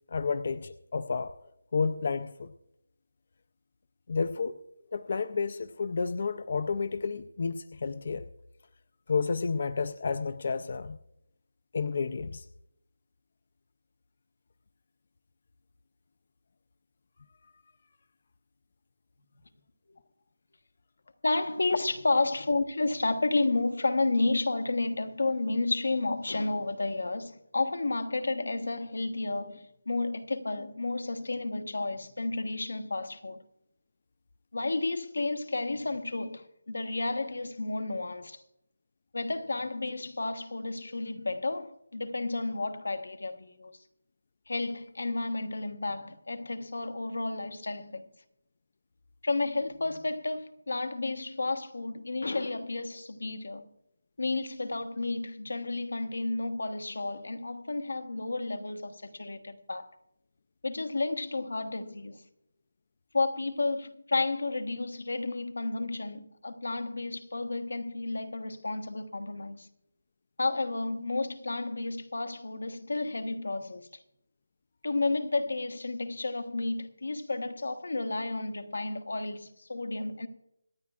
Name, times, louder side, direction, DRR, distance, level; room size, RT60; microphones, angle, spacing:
voice 1, 0.1-1.3 1.7-2.5 4.1-4.6 4.9-8.3 9.1-11.0 11.7-12.4, left 5 dB, 40° left, 0.4 m, -31 dB
voice 2, 21.2-33.4 34.5-38.4 39.1-43.8 44.5-48.1 49.2-53.7 54.2-59.9 60.6-62.2 63.1-69.7 70.4-73.9 74.8-80.3, left 2 dB, 90° left, 1.2 m, -31 dB
25.5 x 9.6 x 2.4 m
figure-of-eight pair, 175°, 0 cm